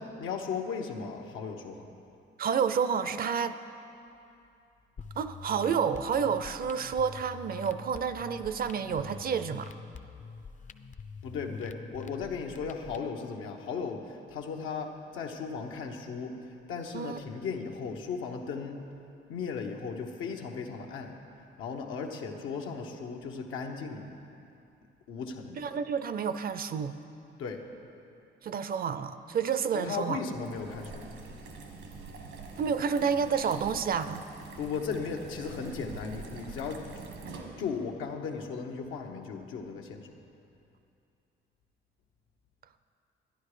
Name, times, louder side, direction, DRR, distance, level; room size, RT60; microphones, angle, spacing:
voice 1, 0.0-1.9 11.2-16.4 16.7-18.8 19.3-21.1 21.6-24.1 25.1-25.6 27.4-27.6 29.7-31.1 34.6-36.8 37.6-40.1, left 5 dB, 90° left, 2 dB, 1.0 m, -36 dB
voice 2, 2.4-3.6 5.2-9.7 16.9-17.2 25.6-27.0 28.4-30.2 32.6-34.2, right 6 dB, 50° right, 12 dB, 0.5 m, -29 dB
sound 1, 5.0-13.0, left 5 dB, 40° left, 0.5 m, -46 dB
sound 2, 30.3-37.9, right 4 dB, 85° right, 1.5 m, -45 dB
11.5 x 10.5 x 4.9 m, 2.7 s
cardioid pair, 90°, 20 cm